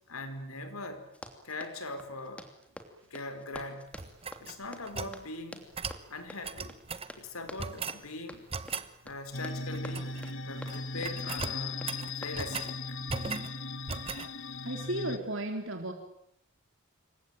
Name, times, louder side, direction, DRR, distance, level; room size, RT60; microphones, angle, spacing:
voice 1, 0.1-1.1 1.4-2.5 3.1-4.0 4.4-5.7 6.1-6.8 7.2-8.5 9.0-10.2 10.5-13.0, left 2 dB, 80° left, 4.8 m, -41 dB
Run, 1.1-12.9, equal, 5° left, 2.8 m, -49 dB
sound 1, 3.9-5.2 5.7-6.0 6.4-7.1 7.6-8.0 8.5-8.9 9.7-10.3 10.6-10.8 11.0-12.7 13.1-13.5 13.9-14.3, right 4 dB, 25° right, 1.2 m, -38 dB
sound 2, 9.3-15.2, left 3 dB, 60° left, 1.6 m, -38 dB
voice 2, 14.6-15.9, right 1 dB, 60° right, 4.0 m, -34 dB
27.5 x 23.5 x 9.2 m
head